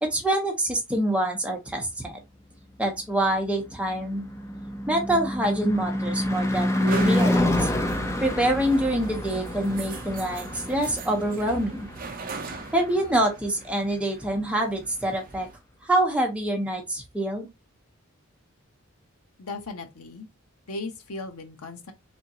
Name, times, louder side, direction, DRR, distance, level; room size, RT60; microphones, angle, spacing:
voice 1, 0.0-2.2 2.8-4.3 4.9-7.7 8.2-11.9 12.7-15.5 15.8-17.5, right 1 dB, 5° right, 0.8 m, -26 dB
Car passing by / Truck / Engine, 3.2-13.5, left 1 dB, 15° left, 0.4 m, -28 dB
sound 1, 4.9-15.6, right 3 dB, 40° right, 0.6 m, -40 dB
voice 2, 19.4-20.3 20.7-21.9, left 3 dB, 90° left, 0.9 m, -37 dB
3.6 x 3.4 x 2.8 m
head